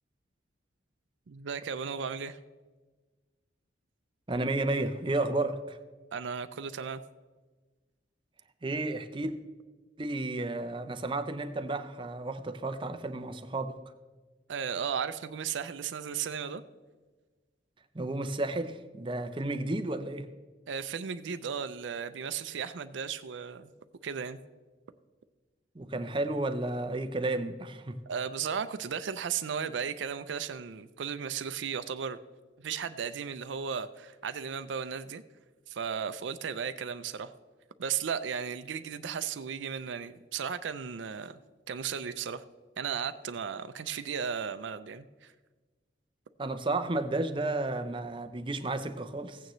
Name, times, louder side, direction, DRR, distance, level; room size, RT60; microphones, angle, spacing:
voice 1, 1.3-2.4 6.1-7.0 14.5-16.6 20.7-23.7 24.0-24.4 28.1-32.2 32.6-35.2 35.7-37.3 37.8-41.4 41.7-42.4 42.8-45.3, right 7 dB, 80° right, 11 dB, 0.5 m, -35 dB
voice 2, 4.3-5.8 8.6-9.3 10.0-13.8 17.9-20.3 25.8-28.0 46.4-49.4, right 2 dB, 25° right, 9 dB, 0.6 m, -32 dB
15.5 x 9.1 x 3.1 m, 1.3 s
head